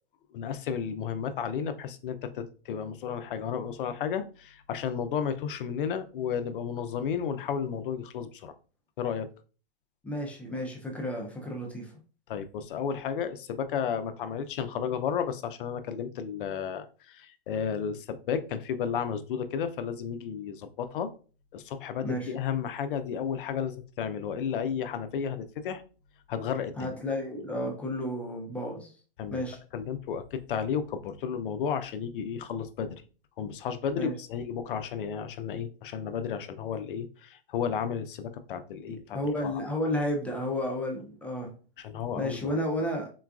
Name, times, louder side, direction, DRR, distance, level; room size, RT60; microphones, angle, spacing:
voice 1, 0.3-8.5 9.0-9.3 12.3-21.1 21.5-25.8 26.3-26.9 29.2-29.4 29.7-33.0 33.4-39.5 41.8-42.6, left 7 dB, 60° left, 0.5 m, -33 dB
voice 2, 10.0-11.9 22.0-22.3 26.8-28.9 29.3-29.6 34.0-34.1 38.9-41.5 42.2-43.1, left 1 dB, 5° left, 0.4 m, -32 dB
3.7 x 2.3 x 2.3 m
hypercardioid pair, 120°, 30 cm